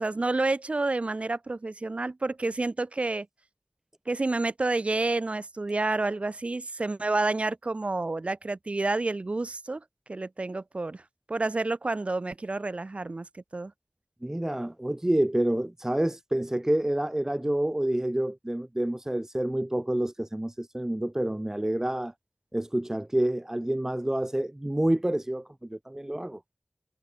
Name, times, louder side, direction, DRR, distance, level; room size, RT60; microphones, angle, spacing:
voice 1, 0.0-3.3 4.1-9.8 10.1-11.0 11.3-13.7, right 2 dB, 60° right, 6.0 m, -29 dB
voice 2, 14.2-22.1 22.5-26.4, right 1 dB, 20° right, 2.5 m, -28 dB
wide cardioid pair, 40°, 2 cm